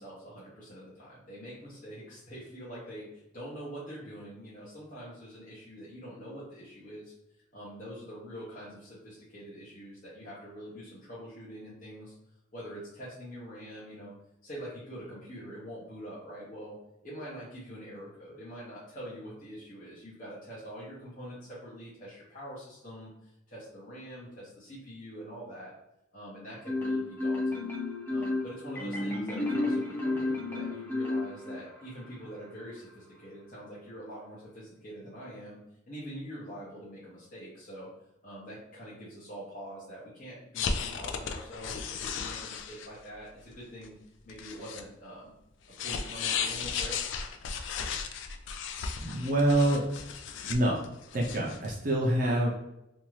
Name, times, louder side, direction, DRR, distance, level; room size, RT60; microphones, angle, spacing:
voice 1, 0.0-7.1 7.5-12.1 12.5-14.1 14.4-16.8 17.0-25.7 26.1-27.8 28.1-35.6 35.9-37.9 38.2-44.0 44.2-45.3 45.8-47.0, equal, 45° left, -9 dB, 0.8 m, -44 dB
Marimba xylophone, 26.7-31.8, left 2 dB, 10° left, 0.5 m, -31 dB
sound 1, 40.6-43.0 43.5-43.6 43.8-43.9 44.3-44.8 45.7-51.7, left 6 dB, 75° left, 0.3 m, -35 dB
voice 2, 49.0-49.8 50.5-50.8 51.1-52.5, right 1 dB, 45° right, -3 dB, 0.5 m, -26 dB
2.7 x 2.3 x 3.0 m, 0.88 s
head